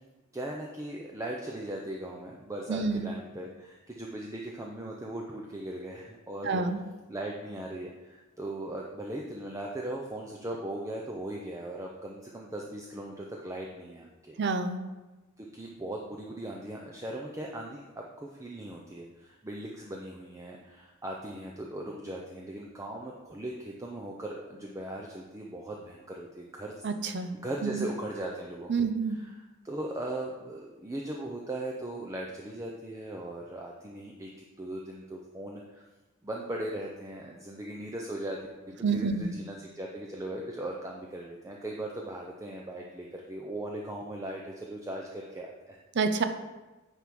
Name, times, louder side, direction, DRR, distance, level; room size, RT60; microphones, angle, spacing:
voice 1, 0.3-6.6 7.1-14.4 15.4-28.7 29.1-35.8 36.2-38.5 38.9-45.8, right 1 dB, 15° right, -1 dB, 0.6 m, -39 dB
voice 2, 2.7-3.1 6.4-6.8 14.4-14.8 26.8-27.3 27.6-27.9 28.7-29.2 38.8-39.3 45.9-46.2, right 4 dB, 55° right, 8 dB, 0.6 m, -28 dB
9.8 x 3.5 x 4.7 m, 1.1 s
head